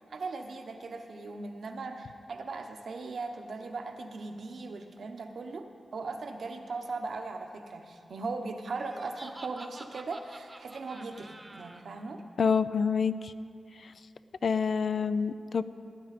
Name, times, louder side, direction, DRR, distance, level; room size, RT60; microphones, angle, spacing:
voice 1, 0.1-12.2, right 3 dB, 75° right, 5 dB, 0.9 m, -39 dB
Laughter, 8.8-11.8, right 2 dB, 30° right, 0.9 m, -48 dB
voice 2, 12.4-13.3 13.8-13.9 14.4-15.6, left 6 dB, 75° left, 13 dB, 0.4 m, -27 dB
17.5 x 9.5 x 4.2 m, 2.5 s
cardioid pair, 55°, 0 cm